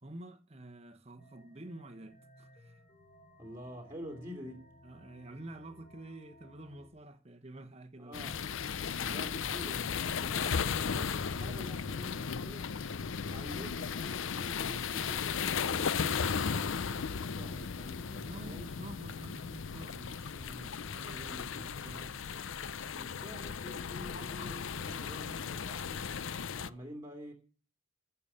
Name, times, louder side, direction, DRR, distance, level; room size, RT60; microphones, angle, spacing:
voice 1, 0.0-2.8 4.8-8.2 10.2-10.4 18.2-22.2, right 1 dB, 30° right, 1.1 m, -49 dB
sound 1, 1.2-6.9, left 1 dB, 35° left, 3.9 m, -60 dB
voice 2, 3.4-4.7 8.0-8.4 8.9-12.7 13.2-15.3 15.6-18.7 22.9-26.1 26.5-27.3, equal, 15° right, 2.7 m, -48 dB
sound 2, 8.1-26.7, left 6 dB, 70° left, 0.6 m, -36 dB
15.5 x 6.9 x 8.6 m
head